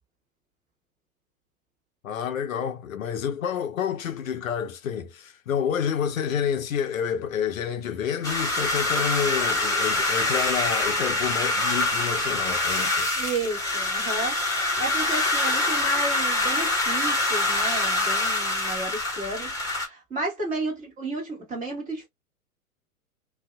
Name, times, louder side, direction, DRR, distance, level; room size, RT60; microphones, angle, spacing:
voice 1, 2.0-13.1, left 8 dB, 70° left, 0.6 m, -29 dB
sound 1, 8.2-19.9, left 2 dB, 10° left, 0.8 m, -25 dB
voice 2, 13.2-22.1, right 2 dB, 20° right, 1.3 m, -33 dB
2.6 x 2.3 x 2.2 m
figure-of-eight pair, 110°, 42 cm